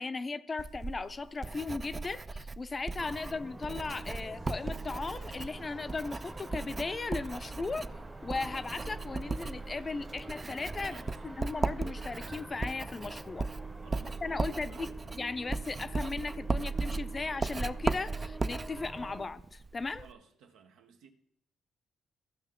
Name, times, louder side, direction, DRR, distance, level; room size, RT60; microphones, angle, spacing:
voice 1, 0.0-7.9 8.2-13.5 14.0-14.9 15.2-20.1, left 3 dB, 30° left, 0.5 m, -37 dB
Writing, 0.6-20.1, right 3 dB, 30° right, 0.3 m, -37 dB
sound 1, 3.0-19.3, right 2 dB, 10° right, 0.8 m, -47 dB
sound 2, 3.7-16.4, right 4 dB, 45° right, 1.5 m, -60 dB
voice 2, 10.7-11.2 13.7-14.9 20.0-21.1, right 6 dB, 90° right, 1.0 m, -57 dB
14.5 x 5.6 x 3.7 m
cardioid pair, 90°, 0 cm